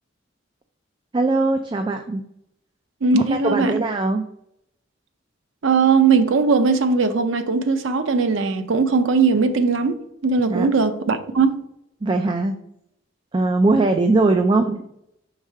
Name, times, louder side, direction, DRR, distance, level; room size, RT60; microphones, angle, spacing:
voice 1, 1.1-2.2 3.1-4.2 10.5-10.7 12.0-12.5 13.3-14.9, right 2 dB, 25° right, 0.3 m, -20 dB
voice 2, 3.0-3.7 5.6-11.6, right 4 dB, 80° right, 0.6 m, -19 dB
4.8 x 3.6 x 5.5 m
head